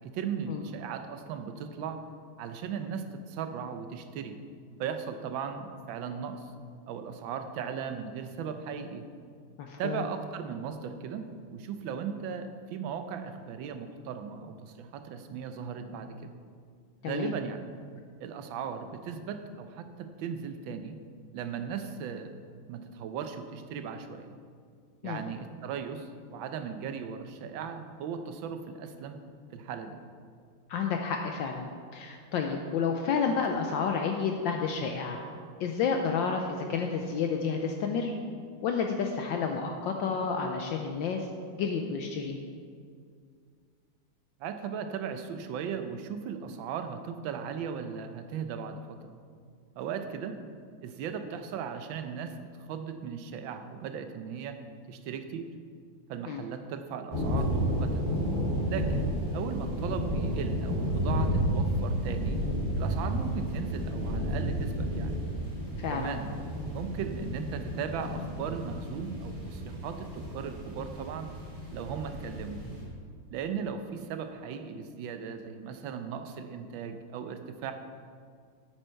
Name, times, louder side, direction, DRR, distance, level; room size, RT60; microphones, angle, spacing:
voice 1, 0.0-2.0 2.4-4.4 4.8-6.4 6.9-9.1 9.8-16.3 17.0-17.7 18.2-21.0 21.3-22.3 22.7-24.4 25.0-29.2 29.5-30.0 44.4-49.1 49.7-50.4 50.8-54.6 54.9-55.5 56.1-58.1 58.6-62.4 62.7-65.2 65.9-66.3 66.7-71.3 71.7-72.6 73.3-77.7, right 7 dB, 70° right, 7 dB, 1.4 m, -37 dB
voice 2, 9.6-10.0 17.0-17.3 25.0-25.2 30.7-35.2 35.6-38.1 38.6-42.4 56.3-56.4 65.8-66.2, left 5 dB, 70° left, 3 dB, 1.2 m, -30 dB
sound 1, 57.1-72.8, equal, 25° right, 2.2 m, -32 dB
9.1 x 9.0 x 4.5 m, 2.1 s
omnidirectional pair, 2.4 m